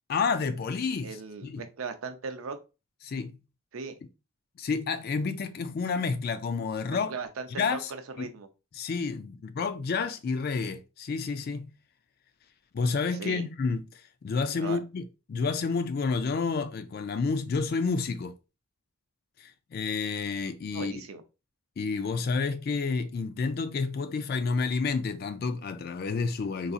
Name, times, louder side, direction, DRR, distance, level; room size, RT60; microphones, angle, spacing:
voice 1, 0.1-1.6 3.0-3.4 4.6-7.1 7.6-7.9 8.2-8.3 8.7-11.7 12.7-18.3 19.4-20.9 21.8-26.7, left 4 dB, 45° left, 0.3 m, -30 dB
voice 2, 1.0-2.6 3.7-4.0 6.9-8.5 13.2-13.4 14.6-14.8 20.7-21.2, right 4 dB, 70° right, 0.5 m, -38 dB
3.9 x 2.6 x 2.4 m
head